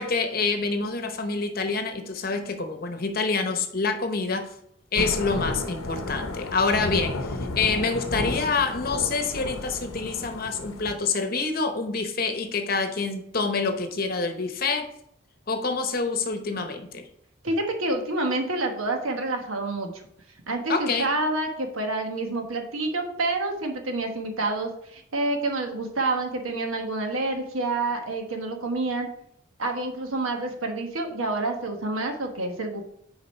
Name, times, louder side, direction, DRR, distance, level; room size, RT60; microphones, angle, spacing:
voice 1, 0.0-4.5 4.9-14.9 15.5-17.0 20.7-21.1, left 4 dB, 45° left, 7 dB, 0.8 m, -27 dB
Thunder / Rain, 5.0-10.9, left 2 dB, 85° left, 0.8 m, -32 dB
voice 2, 17.4-19.9 20.5-29.1 29.6-32.9, right 2 dB, 90° right, 4 dB, 1.2 m, -28 dB
6.9 x 4.8 x 4.4 m, 0.73 s
head